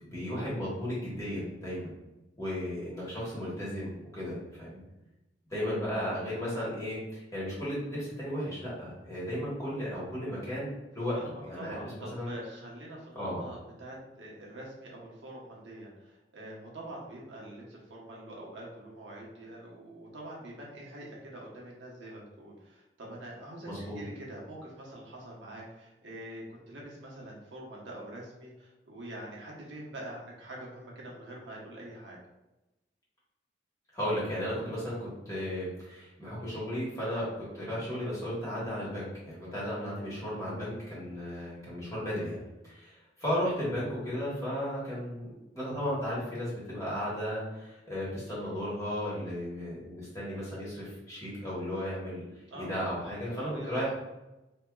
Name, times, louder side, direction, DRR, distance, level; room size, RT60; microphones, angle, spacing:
voice 1, 0.0-1.9 2.4-4.8 5.5-11.2 11.4-11.8 12.1-12.3 13.1-13.4 23.6-24.0 33.9-37.3 37.5-52.2 52.5-53.9, equal, 15° left, -8 dB, 1.2 m, -35 dB
voice 2, 11.6-32.2 52.5-53.8, right 1 dB, 90° right, -3 dB, 1.1 m, -45 dB
4.2 x 2.8 x 2.3 m, 0.99 s
head